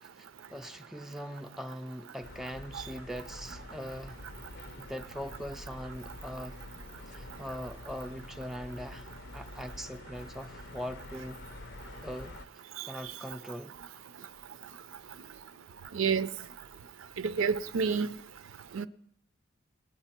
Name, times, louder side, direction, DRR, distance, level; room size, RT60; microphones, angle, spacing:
voice 1, 0.0-4.2 4.8-6.6 7.1-11.4 12.0-12.3 12.8-13.8, equal, ahead, 0.4 m, -41 dB
sound 1, 2.2-12.5, left 2 dB, 55° left, 0.6 m, -47 dB
voice 2, 15.9-16.3 17.2-18.1 18.7-18.9, right 5 dB, 80° right, 0.5 m, -29 dB
19.0 x 9.0 x 4.4 m
head